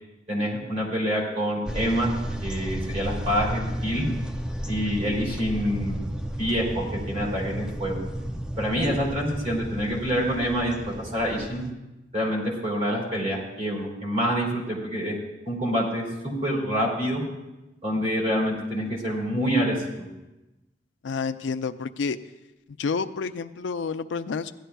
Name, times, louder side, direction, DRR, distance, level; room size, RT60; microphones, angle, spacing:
voice 1, 0.3-2.2 2.4-4.0 4.7-6.0 6.4-8.0 8.6-11.6 12.1-15.2 15.4-17.2 17.8-20.1, equal, 40° right, -3 dB, 3.3 m, -26 dB
sound 1, 1.7-11.7, right 1 dB, 5° right, 0.4 m, -33 dB
voice 2, 21.0-22.2 22.8-24.5, left 5 dB, 85° left, 10 dB, 0.4 m, -29 dB
16.5 x 11.0 x 2.3 m, 1.0 s
head